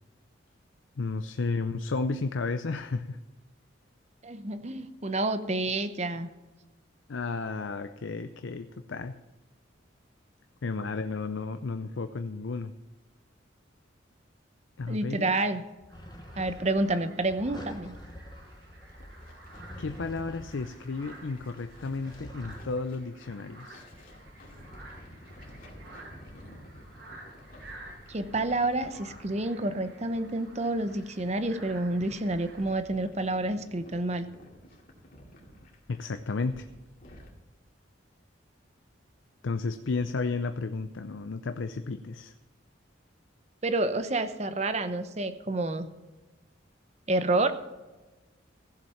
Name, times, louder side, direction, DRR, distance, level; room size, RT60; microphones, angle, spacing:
voice 1, 1.0-3.2 7.1-9.2 10.6-12.7 14.8-15.3 19.8-23.9 35.9-36.7 39.4-42.3, left 3 dB, 75° left, 9 dB, 0.6 m, -33 dB
voice 2, 4.2-6.3 14.9-15.6 16.4-18.0 28.1-34.3 43.6-45.9 47.1-47.6, right 2 dB, 35° right, 10 dB, 0.8 m, -29 dB
sound 1, 15.8-22.8, equal, 20° left, 1.1 m, -47 dB
sound 2, 15.9-32.7, right 2 dB, 60° right, 5.3 m, -52 dB
sound 3, 18.8-37.3, equal, 45° left, 2.3 m, -52 dB
15.5 x 7.3 x 5.7 m, 1.2 s
head